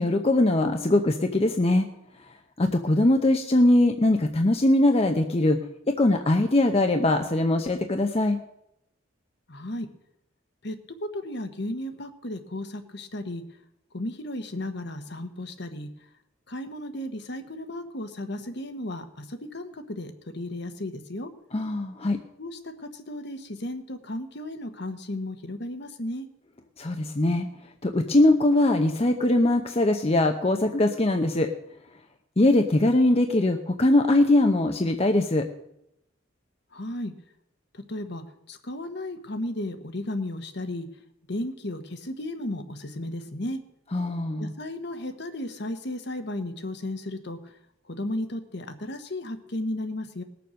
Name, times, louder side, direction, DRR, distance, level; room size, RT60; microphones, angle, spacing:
voice 1, 0.0-1.9 2.6-5.6 5.9-8.4 21.5-22.2 26.8-27.5 27.8-31.5 32.4-35.5 43.9-44.5, left 1 dB, 30° left, 5 dB, 0.7 m, -21 dB
voice 2, 9.5-9.9 10.6-13.4 13.9-15.9 16.5-21.3 22.4-26.3 36.7-37.1 37.7-40.9 41.3-43.6 44.4-47.6 47.9-50.2, left 1 dB, 55° left, 8 dB, 1.2 m, -34 dB
19.5 x 6.9 x 6.4 m, 0.82 s
head